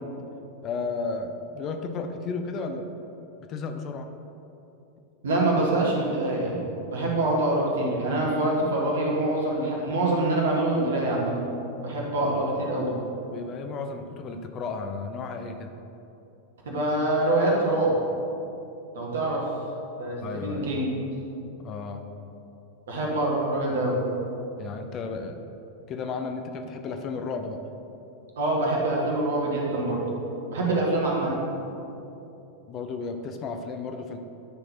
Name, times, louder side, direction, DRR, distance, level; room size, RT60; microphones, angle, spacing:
voice 1, 0.6-2.9 3.5-4.1 13.3-15.7 20.2-20.7 21.6-22.0 24.6-25.4 25.9-27.6 32.7-34.2, left 4 dB, 30° left, 6 dB, 0.5 m, -33 dB
voice 2, 5.2-6.6 6.9-11.3 11.8-12.9 16.6-17.9 18.9-19.5 20.0-21.0 22.9-24.0 28.4-30.0 30.5-31.3, right 2 dB, 65° right, -3 dB, 1.5 m, -25 dB
9.4 x 3.9 x 4.4 m, 2.8 s
figure-of-eight pair, 90°, 0 cm